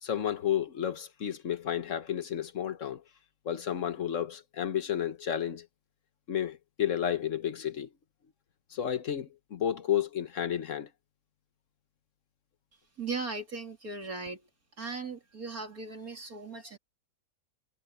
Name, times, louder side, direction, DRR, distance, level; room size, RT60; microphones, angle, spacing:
voice 1, 0.0-3.0 3.4-5.7 6.3-7.9 8.7-10.9, left 9 dB, 50° left, 1.4 m, -31 dB
voice 2, 13.0-14.4 14.8-16.8, right 4 dB, 60° right, 3.4 m, -38 dB
omnidirectional pair, 1.8 m